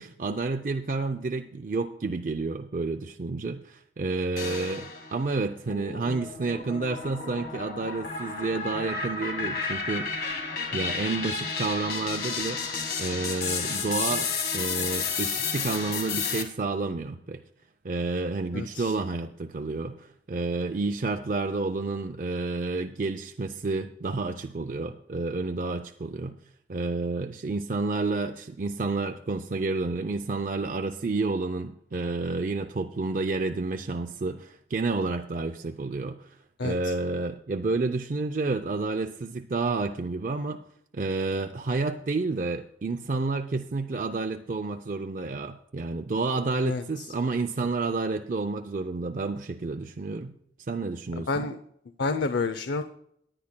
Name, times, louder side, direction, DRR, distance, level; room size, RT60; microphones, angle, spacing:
voice 1, 0.0-10.1 10.7-17.4 17.8-26.4 26.7-40.6 40.9-51.5, right 3 dB, 45° right, 7 dB, 0.4 m, -30 dB
sound 1, 4.4-5.2 5.7-16.4, left 5 dB, 55° left, 1.7 m, -32 dB
voice 2, 18.5-18.9 36.6-36.9 46.6-46.8 51.2-51.6 52.0-52.8, left 3 dB, 80° left, 10 dB, 0.6 m, -29 dB
18.5 x 9.9 x 2.2 m, 0.71 s
head